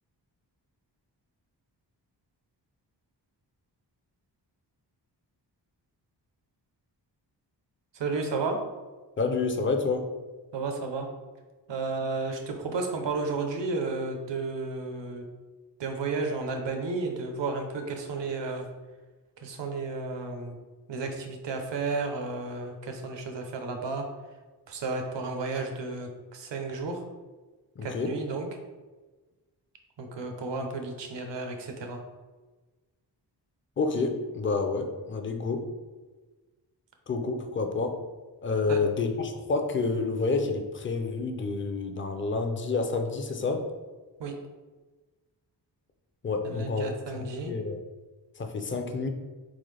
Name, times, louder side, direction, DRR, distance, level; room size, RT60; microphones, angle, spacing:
voice 1, 7.9-8.6 10.5-11.1 11.7-15.3 15.8-18.7 19.4-20.6 20.9-24.1 24.7-27.0 27.8-28.5 30.0-32.0 38.7-38.8 44.2-44.4 46.4-47.5, right 3 dB, 85° right, 4 dB, 0.8 m, -32 dB
voice 2, 9.2-10.1 27.8-28.1 33.8-35.7 37.1-38.0 38.4-43.6 46.2-46.8 47.4-47.8 48.4-49.1, left 4 dB, 30° left, 5 dB, 0.4 m, -29 dB
4.1 x 3.8 x 3.3 m, 1.3 s
wide cardioid pair, 155°, 42 cm